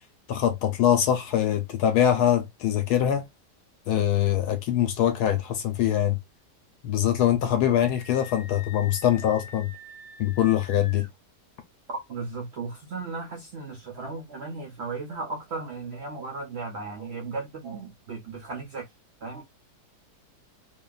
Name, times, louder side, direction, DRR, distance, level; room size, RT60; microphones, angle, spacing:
voice 1, 0.3-3.2 3.9-6.1 6.8-9.7 10.2-11.1, left 10 dB, 75° left, 1.1 m, -23 dB
Screaming, 7.8-11.1, left 4 dB, 35° left, 0.9 m, -45 dB
voice 2, 11.9-18.9 19.2-19.4, right 3 dB, 70° right, 0.6 m, -36 dB
2.7 x 2.2 x 2.2 m
omnidirectional pair, 1.9 m